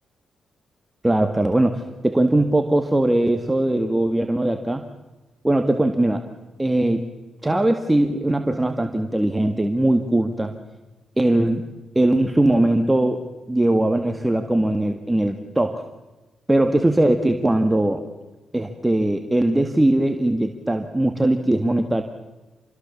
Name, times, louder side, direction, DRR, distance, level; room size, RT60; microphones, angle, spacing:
voice 1, 1.0-4.8 5.4-6.2 6.6-7.1 7.4-10.5 11.2-11.7 11.9-15.8 16.5-18.0 18.5-22.0, right 1 dB, 15° right, 6 dB, 1.8 m, -20 dB
28.0 x 21.0 x 7.2 m, 1.1 s
cardioid pair, 65°, 0 cm